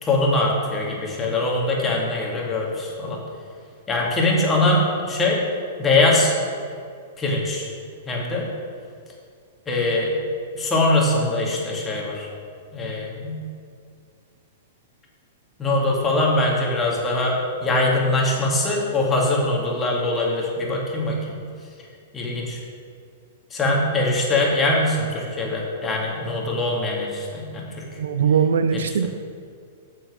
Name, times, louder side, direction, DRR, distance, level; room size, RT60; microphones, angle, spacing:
voice 1, 0.0-3.2 3.9-5.4 5.8-6.3 7.2-7.7 8.1-8.5 9.7-10.2 10.5-12.3 12.7-13.4 15.6-21.4 22.1-22.6 23.5-27.8 28.7-28.8, left 2 dB, 20° left, -3 dB, 2.1 m, -22 dB
voice 2, 28.0-29.1, right 7 dB, 80° right, 12 dB, 0.4 m, -20 dB
7.6 x 7.3 x 5.0 m, 2.2 s
hypercardioid pair, 125°, 0 cm